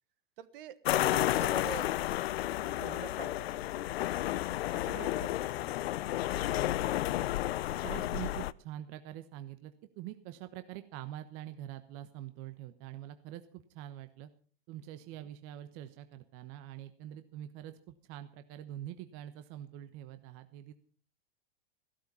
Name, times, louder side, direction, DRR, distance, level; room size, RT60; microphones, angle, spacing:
voice 1, 0.4-0.8 1.1-1.9 2.2-2.4 2.7-4.0 4.7-6.0 15.2-15.3, right 11 dB, 60° right, 14 dB, 1.5 m, -47 dB
sound 1, 0.9-8.5, left 14 dB, 75° left, 0.7 m, -32 dB
voice 2, 7.8-14.3 14.7-20.7, right 12 dB, 45° right, 10 dB, 1.1 m, -45 dB
15.5 x 12.5 x 5.5 m, 0.43 s
hypercardioid pair, 130°, 31 cm